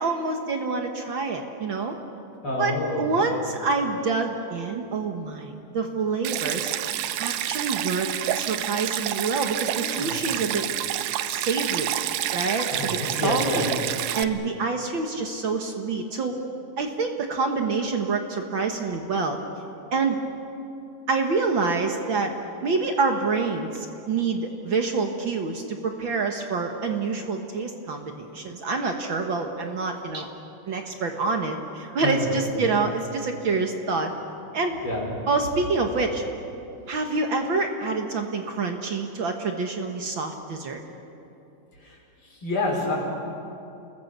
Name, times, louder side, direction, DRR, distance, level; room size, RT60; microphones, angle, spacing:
voice 1, 0.0-1.9 2.6-6.7 7.2-8.1 8.3-10.6 11.2-11.9 12.3-13.7 14.1-16.3 16.8-19.4 19.9-20.2 21.1-22.3 22.6-30.3 30.7-34.1 34.5-34.8 35.3-36.2 36.9-40.8, right 4 dB, 60° right, 4 dB, 1.3 m, -27 dB
voice 2, 2.4-3.2 9.8-10.2 12.8-13.7 31.9-32.7 34.8-35.2 41.8-42.0 42.3-42.9, left 2 dB, 35° left, -2 dB, 6.0 m, -28 dB
Stream, 6.2-14.2, right 13 dB, 75° right, 1.8 m, -28 dB
29.5 x 21.0 x 6.8 m, 2.8 s
omnidirectional pair, 4.1 m